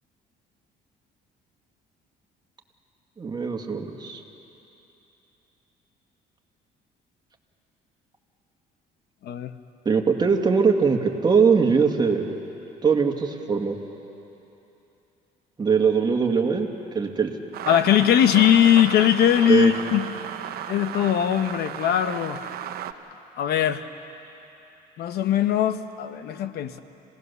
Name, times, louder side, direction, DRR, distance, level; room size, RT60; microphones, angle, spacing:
voice 1, 3.2-4.2 9.9-12.4 12.8-13.8 15.6-17.3 19.5-19.7, right 5 dB, 25° right, 3 dB, 1.9 m, -21 dB
sound 1, 17.5-22.9, right 11 dB, 65° right, 0.8 m, -34 dB
voice 2, 17.7-20.1 20.7-22.4 23.4-23.8 25.0-26.8, left 10 dB, 70° left, 10 dB, 1.0 m, -20 dB
27.0 x 18.0 x 6.9 m, 3.0 s
cardioid pair, 110°, 17 cm